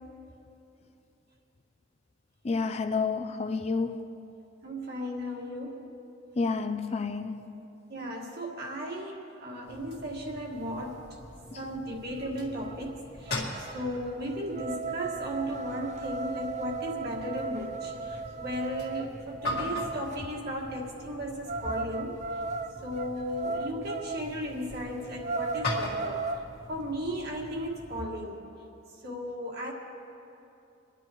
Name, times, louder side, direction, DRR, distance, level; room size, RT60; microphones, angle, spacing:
voice 1, 2.4-4.2 6.4-7.6 11.5-11.6, left 4 dB, 30° left, 0.4 m, -30 dB
voice 2, 4.6-5.9 7.9-11.1 11.6-22.2 22.8-26.4 26.7-28.6 29.0-29.7, equal, 50° right, 1.8 m, -36 dB
sound 1, 9.7-28.0, left 1 dB, 55° left, 2.0 m, -41 dB
sound 2, 12.2-12.3 12.6-12.9 13.3-20.2 21.5-24.3 24.7-24.8 25.1-26.5, right 4 dB, 35° right, 0.4 m, -36 dB
28.0 x 10.5 x 3.1 m
head